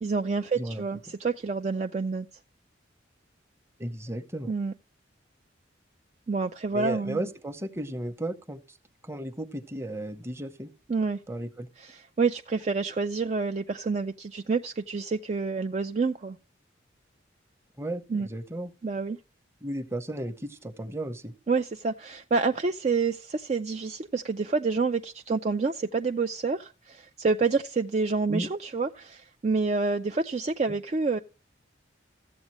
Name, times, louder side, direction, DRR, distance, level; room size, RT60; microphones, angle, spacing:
voice 1, 0.0-2.3 4.5-4.7 6.3-7.2 10.9-11.2 11.8-16.4 18.1-18.3 18.8-19.2 21.5-31.2, right 4 dB, 35° right, 0.4 m, -28 dB
voice 2, 3.8-4.5 6.7-8.8 9.0-10.7 11.3-11.7 17.8-18.7 19.6-21.3 28.3-28.5, right 1 dB, 15° right, 0.8 m, -34 dB
14.5 x 8.0 x 3.0 m
head